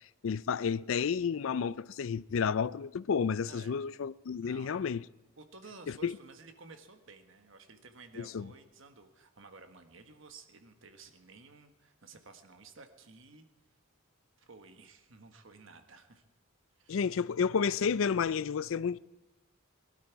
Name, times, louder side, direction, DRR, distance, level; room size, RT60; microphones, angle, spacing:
voice 1, 0.2-5.0 6.0-6.2 8.2-8.5 16.9-19.0, left 6 dB, 70° left, 0.4 m, -31 dB
voice 2, 3.4-3.8 4.4-4.8 5.4-13.4 14.4-16.2 16.8-17.0, right 3 dB, 65° right, 1.5 m, -54 dB
21.5 x 12.0 x 4.7 m
head